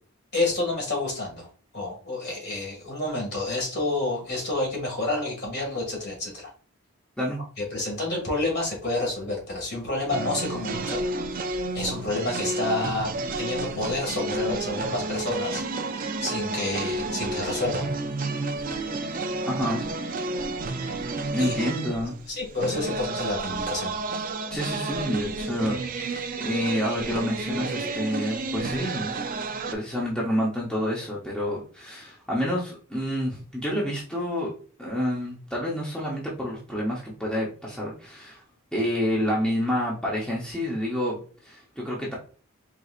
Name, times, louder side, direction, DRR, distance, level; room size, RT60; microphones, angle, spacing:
voice 1, 0.3-1.5 1.7-6.5 7.6-11.0 11.7-13.1 13.4-15.6 16.2-17.9 21.4-21.5 22.3-24.0, left 2 dB, 45° left, -1 dB, 1.9 m, -29 dB
sound 1, 10.1-29.7, right 2 dB, 40° right, 0.4 m, -31 dB
voice 2, 19.4-19.8 21.3-22.1 24.5-29.3 29.7-34.5 34.8-38.4 38.7-41.2 41.4-42.1, equal, 5° left, -5 dB, 0.9 m, -28 dB
4.7 x 3.8 x 2.4 m, 0.39 s
head